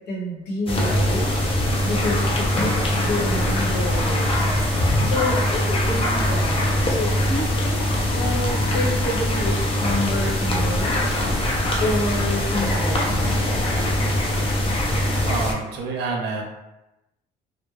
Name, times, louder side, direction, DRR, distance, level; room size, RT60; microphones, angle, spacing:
voice 1, 0.1-1.3 1.8-4.5 5.0-7.8 8.1-11.2 11.8-13.3, left 1 dB, 75° left, -3 dB, 0.9 m, -28 dB
Sweden - Frozen Lake Ambience, 0.7-15.5, left 1 dB, 35° left, 0.6 m, -22 dB
voice 2, 15.3-16.4, right 4 dB, 80° right, 0 dB, 0.6 m, -27 dB
2.2 x 2.0 x 3.1 m, 0.97 s
cardioid pair, 110°, 17 cm